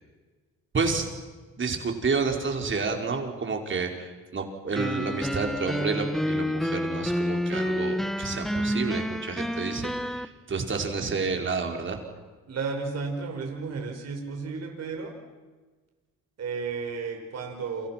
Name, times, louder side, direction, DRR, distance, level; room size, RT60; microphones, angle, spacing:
voice 1, 0.7-1.1 1.6-12.0, right 4 dB, 40° right, 3 dB, 5.1 m, -30 dB
sound 1, 4.8-10.3, equal, ahead, 1.4 m, -29 dB
voice 2, 12.5-15.2 16.4-17.9, right 4 dB, 60° right, 2 dB, 5.9 m, -33 dB
29.5 x 27.5 x 6.1 m, 1.3 s
cardioid pair, 90°, 30 cm